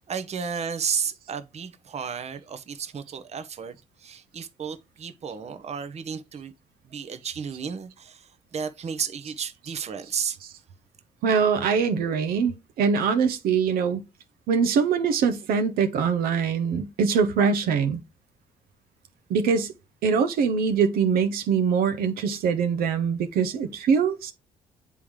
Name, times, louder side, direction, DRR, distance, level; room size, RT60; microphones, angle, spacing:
voice 1, 0.1-6.5 6.8-10.4, right 6 dB, 45° right, 0.8 m, -33 dB
voice 2, 11.2-14.0 14.5-18.0 19.3-19.7 20.0-24.3, right 6 dB, 75° right, 0.7 m, -23 dB
8.2 x 3.7 x 3.1 m
supercardioid pair, 60°, 16 cm